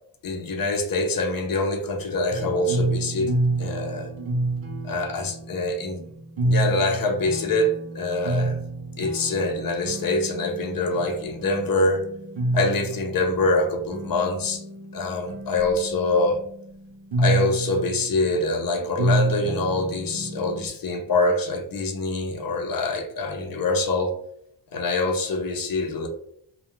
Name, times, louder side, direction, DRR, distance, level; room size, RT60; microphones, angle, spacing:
voice 1, 0.2-3.3 3.6-4.1 4.8-6.0 6.4-8.6 9.0-12.0 12.5-14.6 14.9-16.4 17.2-24.2 24.7-26.1, left 2 dB, 50° left, 4 dB, 0.5 m, -25 dB
sound 1, 2.3-20.7, right 2 dB, 75° right, 0.7 m, -29 dB
2.2 x 2.1 x 2.9 m, 0.69 s
wide cardioid pair, 140°, 47 cm